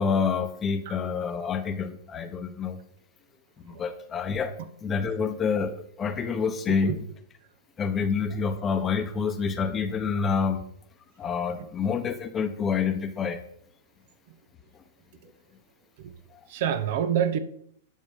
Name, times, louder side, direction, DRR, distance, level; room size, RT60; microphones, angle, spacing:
voice 1, 0.0-2.8 3.6-4.5 4.8-7.0 7.8-10.6 11.2-13.4, left 5 dB, 20° left, 1.0 m, -27 dB
voice 2, 6.7-7.0 14.3-14.4 15.2-15.3 16.0-16.1 16.5-17.4, right 9 dB, 60° right, 0.9 m, -28 dB
9.5 x 4.8 x 5.7 m
hypercardioid pair, 130°, 0 cm